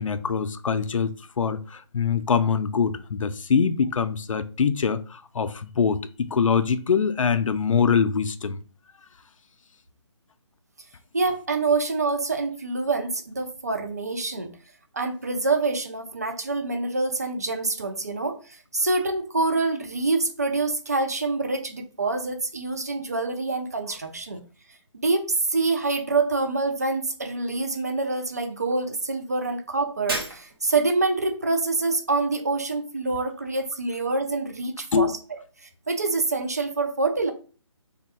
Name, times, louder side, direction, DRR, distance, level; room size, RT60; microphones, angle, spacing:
voice 1, 0.0-8.6 34.9-35.2, left 6 dB, 85° left, 0.5 m, -24 dB
voice 2, 11.1-14.5 14.9-24.4 24.9-37.3, right 3 dB, 30° right, 0.4 m, -26 dB
Shatter, 30.1-30.9, right 1 dB, 50° right, 0.9 m, -32 dB
3.5 x 2.2 x 4.1 m
hypercardioid pair, 175°, 16 cm